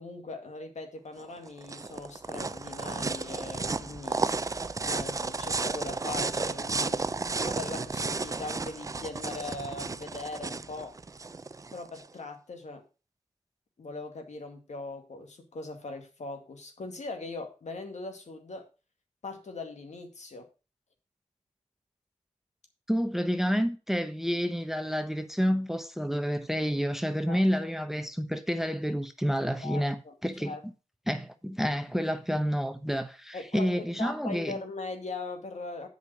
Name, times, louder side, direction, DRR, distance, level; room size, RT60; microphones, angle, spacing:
voice 1, 0.0-4.2 4.8-11.0 11.7-12.8 13.8-18.7 19.2-20.5 27.3-27.4 29.6-30.1 30.4-30.6 33.3-35.9, left 3 dB, 65° left, 2.1 m, -40 dB
sound 1, 1.2-12.1, right 3 dB, 25° right, 0.4 m, -33 dB
voice 2, 22.9-30.6 31.1-34.5, equal, 5° right, 0.8 m, -29 dB
8.1 x 5.5 x 6.0 m
wide cardioid pair, 80°, 13 cm